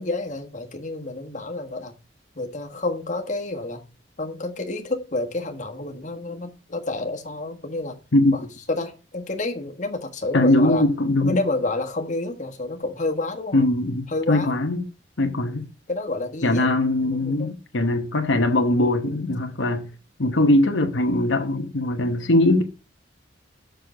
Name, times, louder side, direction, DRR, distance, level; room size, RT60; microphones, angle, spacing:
voice 1, 0.0-1.9 2.3-3.8 4.2-8.0 8.3-8.4 8.7-10.9 11.2-13.7 14.1-14.6 15.9-16.7 17.0-17.5, left 2 dB, 40° left, 1.5 m, -29 dB
voice 2, 10.3-11.4 13.5-14.8 15.2-15.7 16.4-19.9 20.2-22.6, left 1 dB, 75° left, 1.0 m, -21 dB
6.7 x 6.5 x 6.3 m
head